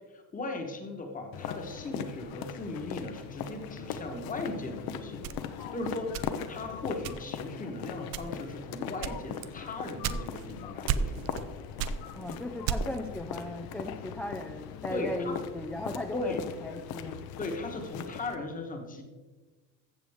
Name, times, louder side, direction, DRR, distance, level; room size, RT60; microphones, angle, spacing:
voice 1, 0.1-5.3 5.7-11.4 14.9-15.4 16.1-16.4 17.4-19.0, left 2 dB, 20° left, 4 dB, 1.2 m, -37 dB
sound 1, 1.3-18.4, left 8 dB, 85° left, 0.9 m, -40 dB
sound 2, 5.2-6.6 7.0-7.5 8.0-8.5 9.0-10.5 10.9-11.5 11.8-13.1, right 8 dB, 75° right, 0.6 m, -33 dB
voice 2, 12.1-17.2, left 1 dB, 5° left, 2 dB, 0.3 m, -37 dB
14.5 x 7.5 x 3.6 m, 1.3 s
cardioid pair, 170°, 36 cm